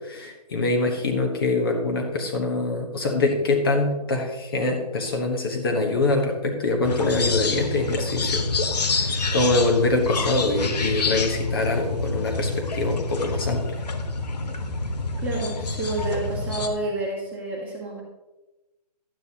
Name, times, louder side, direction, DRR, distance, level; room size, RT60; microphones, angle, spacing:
voice 1, 0.1-8.4 8.8-13.6, left 2 dB, 35° left, 2 dB, 1.2 m, -24 dB
sound 1, 6.8-16.7, left 3 dB, 75° left, 1.3 m, -27 dB
voice 2, 15.2-18.0, right 2 dB, 5° right, -5 dB, 1.4 m, -29 dB
12.5 x 8.9 x 2.9 m, 1.1 s
hypercardioid pair, 165°, 21 cm